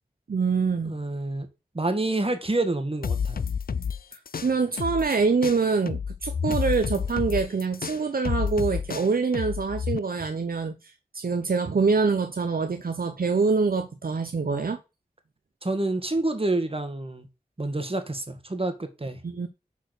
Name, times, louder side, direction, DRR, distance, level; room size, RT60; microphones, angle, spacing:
voice 1, 0.3-0.9 4.1-14.8 19.2-19.5, right 4 dB, 65° right, 0.7 m, -25 dB
voice 2, 0.9-1.5 1.7-3.4 15.6-17.3 17.6-19.2, right 2 dB, 35° right, 1.8 m, -28 dB
sound 1, 3.0-5.2 5.4-10.0, left 6 dB, 70° left, 0.5 m, -29 dB
6.6 x 4.5 x 6.4 m
cardioid pair, 40°, 16 cm